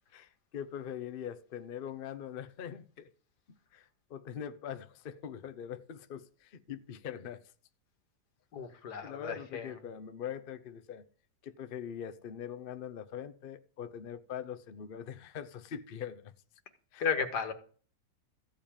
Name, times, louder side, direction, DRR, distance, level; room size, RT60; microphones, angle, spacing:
voice 1, 0.1-3.1 3.7-7.4 9.0-11.1 11.4-16.3 16.9-17.1, left 9 dB, 45° left, 0.8 m, -42 dB
voice 2, 8.5-9.8 17.0-17.5, left 6 dB, 90° left, 2.0 m, -34 dB
14.5 x 5.4 x 8.7 m
omnidirectional pair, 1.7 m